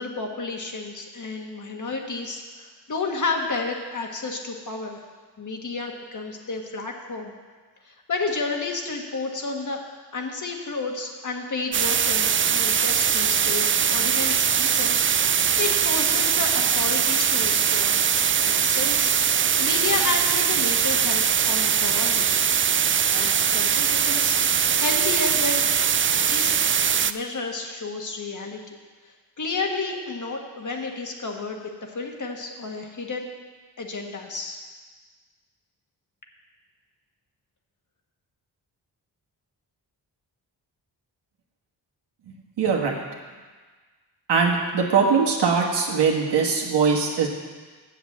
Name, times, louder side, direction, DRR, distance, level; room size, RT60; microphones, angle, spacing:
voice 1, 0.0-5.0 5.4-7.3 7.8-9.8 10.1-18.0 18.4-22.4 23.1-25.6 26.1-26.6 27.0-28.8 29.4-33.3 33.8-34.6, left 3 dB, 45° left, 2 dB, 1.6 m, -31 dB
sound 1, 11.7-27.1, right 8 dB, 30° right, 0.4 m, -21 dB
voice 2, 42.6-42.9 44.3-47.3, right 5 dB, 75° right, 0 dB, 1.6 m, -21 dB
7.5 x 7.4 x 7.3 m, 1.4 s
cardioid pair, 65°, 42 cm